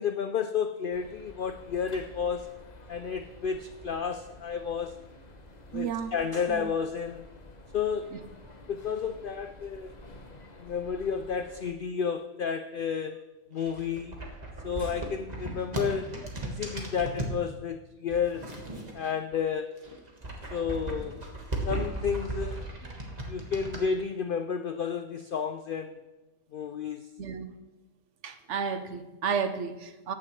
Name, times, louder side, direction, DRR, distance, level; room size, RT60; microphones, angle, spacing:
voice 1, 0.0-2.5 2.9-4.9 5.7-7.3 7.7-8.1 8.7-9.9 10.6-14.2 14.6-18.5 18.9-19.8 20.5-21.2 21.7-22.7 23.3-26.0 26.5-27.1, left 6 dB, 75° left, 7 dB, 0.4 m, -31 dB
sound 1, 0.9-11.7, left 1 dB, 35° left, 1.0 m, -50 dB
voice 2, 5.7-6.1 6.5-6.7 8.1-8.2 16.7-16.8 27.2-27.6 28.2-30.1, right 6 dB, 60° right, 9 dB, 1.0 m, -32 dB
sound 2, 13.5-17.4 18.1-19.4 19.7-23.8, right 2 dB, 30° right, 1.6 m, -36 dB
15.0 x 9.6 x 3.2 m, 1.1 s
omnidirectional pair, 1.5 m